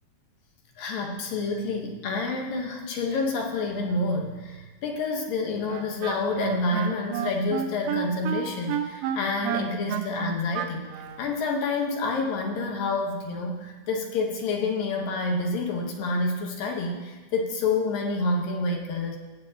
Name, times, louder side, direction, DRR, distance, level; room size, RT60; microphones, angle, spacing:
voice 1, 0.8-10.8 11.2-19.2, left 3 dB, 65° left, 1 dB, 2.5 m, -28 dB
Wind instrument woodwind instrument, 5.7-11.3, right 9 dB, 85° right, 3.0 m, -31 dB
20.5 x 8.8 x 2.9 m, 1.3 s
omnidirectional pair, 5.0 m